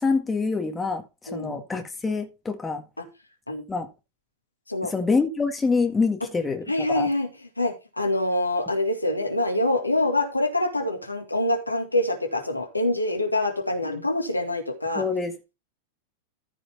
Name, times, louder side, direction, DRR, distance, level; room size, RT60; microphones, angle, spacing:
voice 1, 0.0-2.8 3.7-3.9 4.8-7.1 15.0-15.4, left 4 dB, 10° left, 1.8 m, -26 dB
voice 2, 1.3-1.6 3.5-3.7 4.7-4.9 6.7-7.3 7.6-15.0, left 1 dB, 85° left, 2.1 m, -25 dB
13.5 x 5.1 x 4.6 m
figure-of-eight pair, 90°, 0 cm